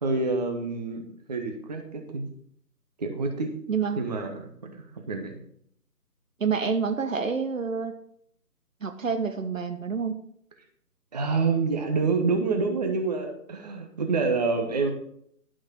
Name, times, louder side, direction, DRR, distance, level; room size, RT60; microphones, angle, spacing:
voice 1, 0.0-2.3 3.0-3.5 4.0-4.8 5.1-5.4 11.1-14.9, right 4 dB, 25° right, 4 dB, 0.9 m, -27 dB
voice 2, 3.7-4.0 6.4-8.0 8.8-10.2, right 5 dB, 55° right, 8 dB, 1.0 m, -28 dB
11.0 x 6.3 x 4.6 m, 0.69 s
figure-of-eight pair, 150°, 48 cm